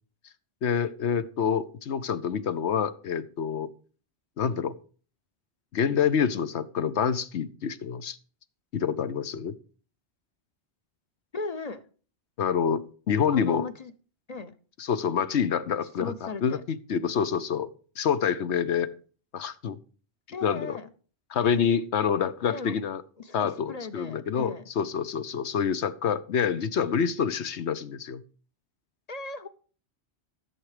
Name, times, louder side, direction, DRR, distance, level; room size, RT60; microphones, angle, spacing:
voice 1, 0.6-3.7 4.4-4.7 5.7-8.2 8.7-9.5 12.4-13.7 14.8-17.7 18.0-18.9 19.3-19.8 20.4-20.8 21.3-23.0 23.3-28.2, left 7 dB, 85° left, 1.1 m, -27 dB
voice 2, 11.3-11.8 13.3-13.9 14.3-14.5 16.0-16.6 20.3-20.9 22.5-22.7 23.2-24.6 29.1-29.5, left 4 dB, 40° left, 0.8 m, -37 dB
14.0 x 7.5 x 4.9 m
omnidirectional pair, 1.1 m